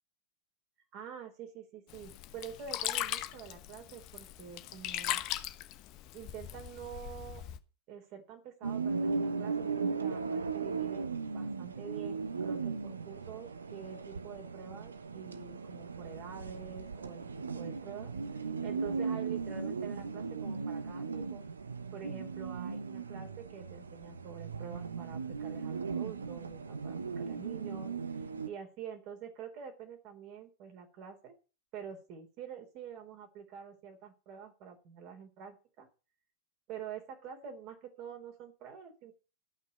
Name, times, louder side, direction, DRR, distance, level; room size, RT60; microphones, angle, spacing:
voice 1, 0.9-5.2 6.1-7.4 7.9-18.1 18.6-21.4 21.9-31.4 31.7-35.9 36.7-39.1, right 7 dB, 40° right, 5 dB, 4.0 m, -47 dB
Sink (filling or washing), 1.9-7.6, left 13 dB, 40° left, 1.1 m, -39 dB
sound 1, 8.6-28.5, right 5 dB, 75° right, 1.0 m, -37 dB
13.5 x 6.1 x 8.4 m, 0.33 s
figure-of-eight pair, 90°, 0 cm